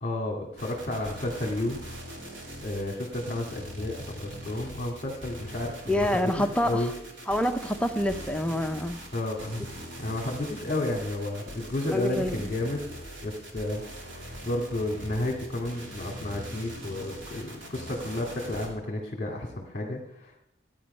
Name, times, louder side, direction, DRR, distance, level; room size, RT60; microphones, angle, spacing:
voice 1, 0.0-1.8 2.6-6.9 9.1-9.7 10.0-12.8 13.2-20.3, left 1 dB, 35° left, -2 dB, 2.1 m, -32 dB
sound 1, 0.6-18.7, equal, 75° right, 2.8 m, -42 dB
voice 2, 5.9-6.9 7.3-9.0 11.9-12.5, left 1 dB, 5° left, 5 dB, 0.6 m, -27 dB
15.5 x 9.6 x 5.5 m, 0.83 s
head